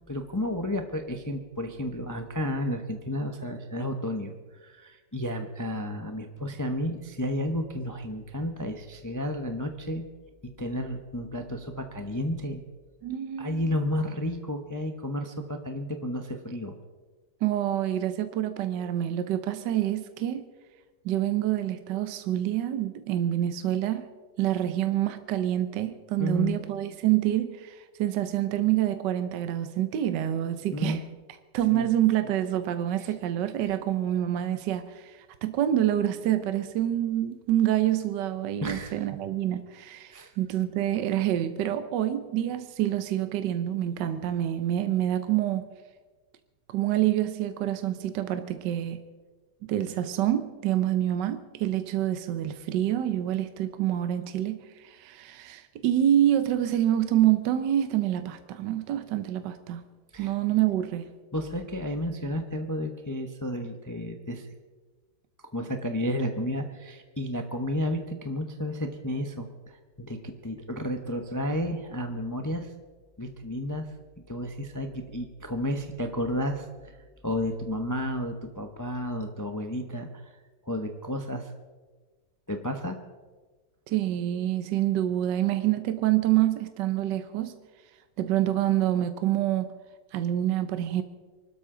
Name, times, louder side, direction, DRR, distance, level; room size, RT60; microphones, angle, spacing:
voice 1, 0.1-4.3 4.6-10.0 10.4-12.6 13.4-16.7 26.2-26.6 30.7-31.0 31.7-31.9 33.0-33.1 38.6-39.1 40.1-40.3 60.1-60.3 61.3-64.5 65.5-72.7 73.2-73.9 74.3-77.0 77.2-80.3 80.7-81.5 82.5-83.0, left 1 dB, 20° left, 0.5 m, -32 dB
voice 2, 13.0-13.6 17.4-20.5 21.0-24.1 24.4-31.0 31.5-45.6 46.7-49.0 49.7-59.8 60.2-61.1 83.9-87.5 88.2-89.7 90.1-91.0, right 12 dB, 75° right, 1.3 m, -27 dB
24.0 x 12.5 x 3.8 m
omnidirectional pair, 2.0 m